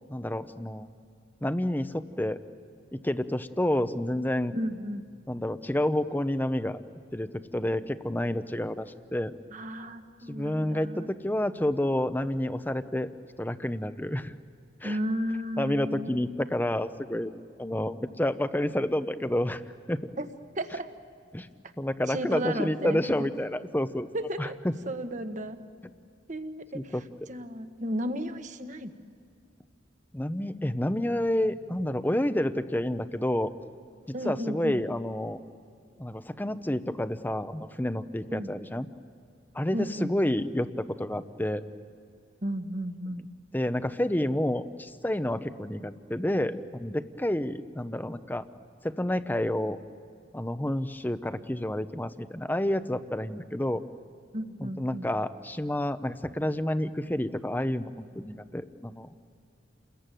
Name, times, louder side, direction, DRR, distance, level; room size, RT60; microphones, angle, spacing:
voice 1, 0.1-0.9 1.4-2.4 2.9-4.5 5.3-6.8 7.1-9.3 10.3-13.1 13.4-14.3 14.8-15.0 15.6-17.3 17.6-19.6 19.9-20.0 21.3-21.5 21.8-24.1 24.4-24.5 26.7-27.0 30.1-33.5 34.2-35.4 36.0-38.9 39.5-41.6 43.5-48.4 48.8-49.8 50.3-53.8 54.6-59.3, left 1 dB, 10° left, 11 dB, 0.8 m, -29 dB
voice 2, 4.5-5.0 9.5-11.1 14.8-16.2 20.2-20.3 20.5-20.9 22.1-23.3 24.1-24.6 24.8-25.6 26.3-28.9 34.1-34.8 38.3-38.5 39.7-40.2 42.4-43.3 54.3-55.1, equal, 45° right, 7 dB, 1.5 m, -34 dB
29.5 x 21.5 x 9.2 m, 2.4 s
head